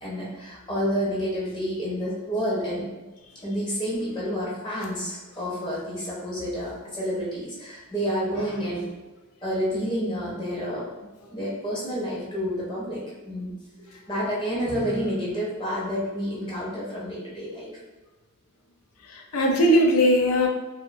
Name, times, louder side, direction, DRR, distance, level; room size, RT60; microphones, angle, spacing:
voice 1, 0.0-2.9 3.4-8.9 9.4-10.9 11.3-13.6 14.1-17.8, equal, 20° left, -6 dB, 0.6 m, -29 dB
voice 2, 19.0-20.5, equal, 80° left, 0 dB, 0.5 m, -21 dB
2.5 x 2.0 x 2.6 m, 1.2 s
head